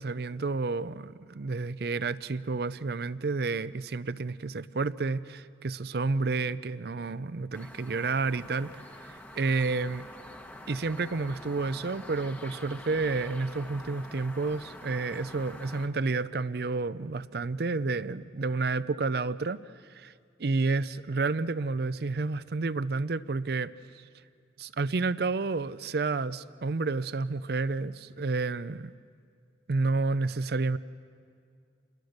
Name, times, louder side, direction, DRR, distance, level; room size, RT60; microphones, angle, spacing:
voice 1, 0.0-10.0 10.7-19.6 19.9-20.1 20.4-24.0 24.6-28.9 29.7-30.8, right 3 dB, 60° right, 16 dB, 0.5 m, -30 dB
sound 1, 7.5-15.9, left 1 dB, 10° left, 1.1 m, -46 dB
28.0 x 21.0 x 6.6 m, 2.3 s
head